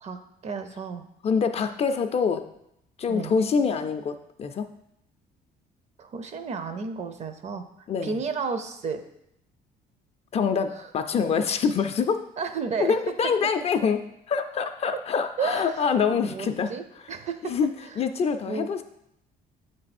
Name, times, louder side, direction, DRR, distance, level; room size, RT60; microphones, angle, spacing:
voice 1, 0.0-1.0 3.1-3.3 6.0-7.6 8.0-9.0 10.7-10.9 12.4-13.0 15.4-15.8 16.1-17.5 18.5-18.8, right 5 dB, 40° right, 9 dB, 0.6 m, -32 dB
voice 2, 1.2-2.4 3.0-4.7 7.9-8.2 10.3-12.2 12.8-16.7 17.4-18.8, left 6 dB, 40° left, 8 dB, 0.4 m, -25 dB
7.4 x 3.3 x 4.2 m, 0.79 s
cardioid pair, 110°, 17 cm